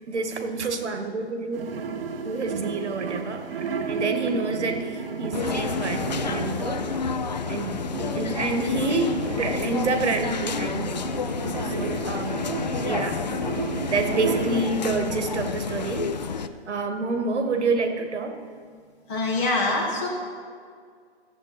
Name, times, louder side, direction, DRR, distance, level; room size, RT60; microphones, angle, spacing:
voice 1, 0.1-1.7 2.2-6.8 7.5-7.9 8.1-11.0 11.6-12.4 12.8-13.3 13.9-16.1 16.7-18.4, right 3 dB, 80° right, 7 dB, 1.5 m, -28 dB
sound 1, 1.5-14.6, right 5 dB, 55° right, 1.0 m, -33 dB
sound 2, 5.3-16.5, left 5 dB, 40° left, 0.4 m, -30 dB
voice 2, 19.1-20.1, left 2 dB, 15° left, -2 dB, 1.0 m, -24 dB
15.5 x 7.5 x 4.1 m, 2.1 s
hypercardioid pair, 165°, 34 cm